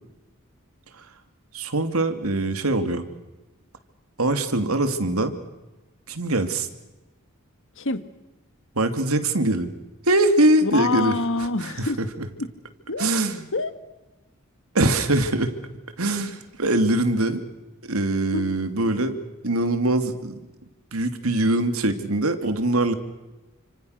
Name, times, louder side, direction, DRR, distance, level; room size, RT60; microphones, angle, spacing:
voice 1, 1.5-3.0 4.2-5.3 6.1-6.7 8.7-9.7 10.0-11.1 11.6-12.3 13.0-13.5 14.7-15.6 16.0-17.4 17.8-19.2 19.4-20.4 20.9-22.9, right 2 dB, 85° right, 8 dB, 2.8 m, -22 dB
voice 2, 7.8-8.1 10.6-12.0 12.4-12.5 12.9-13.1 13.5-13.7 18.3-18.4, left 3 dB, 65° left, 11 dB, 1.8 m, -26 dB
30.0 x 26.5 x 6.7 m, 1.1 s
head